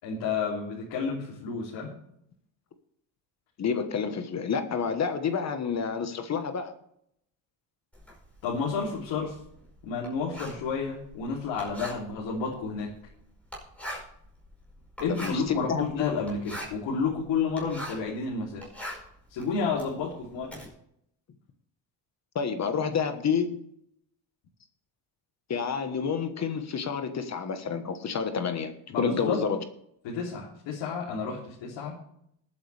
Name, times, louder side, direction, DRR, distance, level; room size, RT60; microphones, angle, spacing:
voice 1, 0.0-1.9 8.4-9.4 9.8-12.9 15.0-18.7 19.3-20.5 28.9-29.4 30.0-32.0, left 5 dB, 85° left, -4 dB, 3.2 m, -31 dB
voice 2, 3.6-6.7 15.1-15.8 22.3-23.6 25.5-29.6, left 6 dB, 40° left, 8 dB, 1.2 m, -29 dB
Writing, 7.9-18.1 18.5-20.7, equal, 5° left, 5.2 m, -42 dB
20.0 x 8.6 x 3.4 m, 0.73 s
cardioid pair, 155°, 44 cm